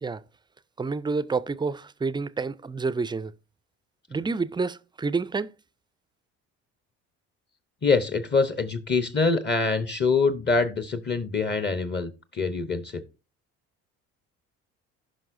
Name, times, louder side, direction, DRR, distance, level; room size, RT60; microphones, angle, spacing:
voice 1, 0.8-3.3 4.1-5.5, right 4 dB, 15° right, 0.4 m, -28 dB
voice 2, 7.8-13.0, left 4 dB, 30° left, 0.9 m, -25 dB
15.5 x 5.5 x 2.6 m
hypercardioid pair, 65°, 34 cm